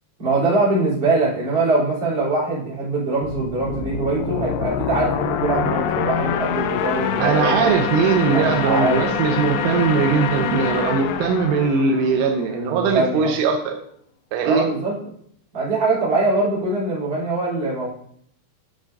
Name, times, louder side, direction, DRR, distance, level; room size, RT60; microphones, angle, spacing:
voice 1, 0.2-7.7 8.3-9.0 12.5-13.3 14.4-14.9 15.5-17.9, right 2 dB, 25° right, -9 dB, 3.3 m, -22 dB
sound 1, 3.2-12.8, left 7 dB, 80° left, 2.6 m, -25 dB
voice 2, 7.2-13.7 14.3-14.7, right 5 dB, 85° right, 3 dB, 3.3 m, -20 dB
11.0 x 7.3 x 2.6 m, 0.66 s
omnidirectional pair, 5.6 m